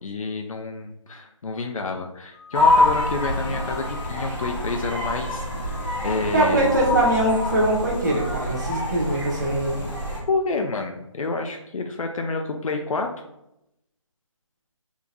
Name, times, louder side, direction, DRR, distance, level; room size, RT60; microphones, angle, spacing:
voice 1, 0.0-5.5 6.0-6.7 10.3-13.1, left 3 dB, 85° left, 3 dB, 0.5 m, -28 dB
sound 1, 2.3-5.2 5.6-6.4 6.7-8.3, left 6 dB, 10° right, 0.4 m, -43 dB
sound 2, 2.5-10.2, left 2 dB, 5° left, 1.0 m, -25 dB
voice 2, 6.3-9.8, right 1 dB, 35° right, -4 dB, 0.9 m, -22 dB
3.6 x 2.9 x 2.5 m, 0.83 s
hypercardioid pair, 170°, 17 cm